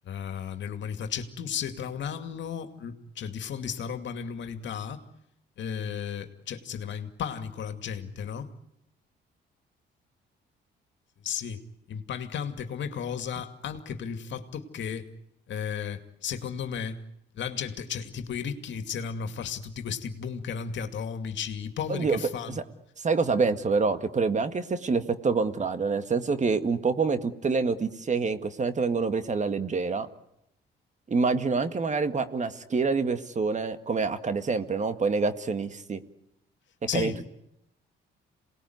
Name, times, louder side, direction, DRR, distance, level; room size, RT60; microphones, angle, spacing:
voice 1, 0.1-5.0 5.6-8.5 11.2-11.6 11.9-15.1 15.5-17.0 17.3-22.6 36.9-37.2, left 7 dB, 70° left, 8 dB, 2.4 m, -34 dB
voice 2, 23.0-30.1 31.1-36.0 36.9-37.3, right 4 dB, 35° right, 10 dB, 2.0 m, -26 dB
27.0 x 19.5 x 9.5 m, 0.81 s
cardioid pair, 90°, 20 cm